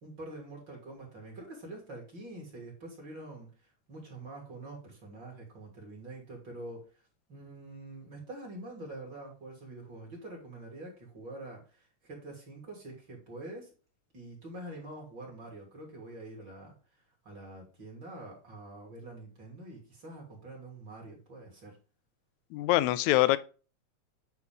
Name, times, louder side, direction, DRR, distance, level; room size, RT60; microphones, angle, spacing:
voice 1, 0.0-3.5 3.9-6.8 7.3-11.6 12.0-13.7 14.1-16.8 17.2-21.8, right 2 dB, 40° right, 3.3 m, -45 dB
voice 2, 22.5-23.4, left 16 dB, 80° left, 1.8 m, -24 dB
9.5 x 4.5 x 3.6 m
omnidirectional pair, 3.4 m